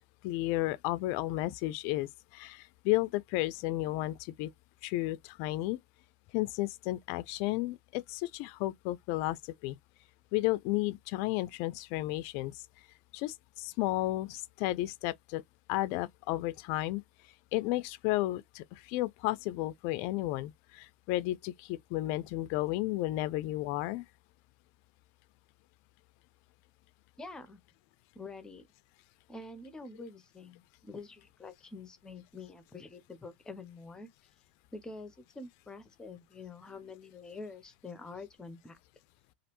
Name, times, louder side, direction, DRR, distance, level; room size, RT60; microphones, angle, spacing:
voice 1, 0.2-4.5 4.8-5.8 6.3-9.8 10.3-12.6 13.1-15.4 15.7-17.0 17.5-24.1, left 17 dB, 45° left, 0.4 m, -33 dB
voice 2, 27.2-27.6 28.1-28.7 29.3-34.1 34.7-38.8, left 3 dB, 10° left, 0.7 m, -46 dB
3.1 x 2.5 x 3.0 m
hypercardioid pair, 115°, 6 cm